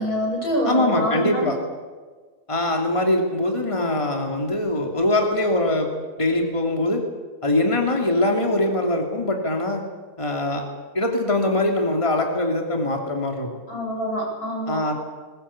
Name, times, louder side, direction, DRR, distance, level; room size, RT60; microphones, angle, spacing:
voice 1, 0.0-1.5 13.7-14.8, equal, 85° left, -2 dB, 8.8 m, -25 dB
voice 2, 0.7-1.6 2.5-5.9 6.2-7.0 7.4-9.8 10.2-10.6 10.9-13.5 14.7-14.9, left 1 dB, 20° left, 2 dB, 2.8 m, -22 dB
21.0 x 20.5 x 8.5 m, 1.4 s
omnidirectional pair, 1.6 m